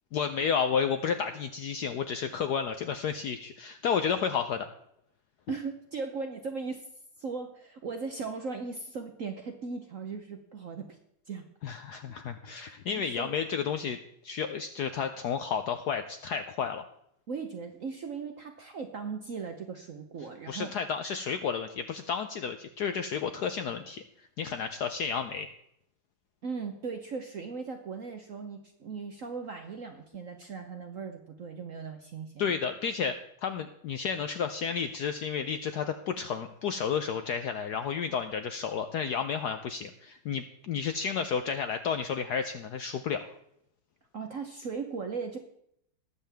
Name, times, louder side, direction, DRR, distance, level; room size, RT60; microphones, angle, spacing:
voice 1, 0.1-4.7 11.6-14.0 14.2-16.9 20.5-24.0 24.4-25.5 32.4-43.3, left 6 dB, 75° left, 8 dB, 0.9 m, -31 dB
voice 2, 5.5-6.9 7.2-11.0 11.3-11.4 13.0-13.3 17.3-20.7 26.4-32.5 44.1-45.4, right 5 dB, 60° right, 5 dB, 0.9 m, -38 dB
19.5 x 7.4 x 3.4 m, 0.75 s
omnidirectional pair, 2.3 m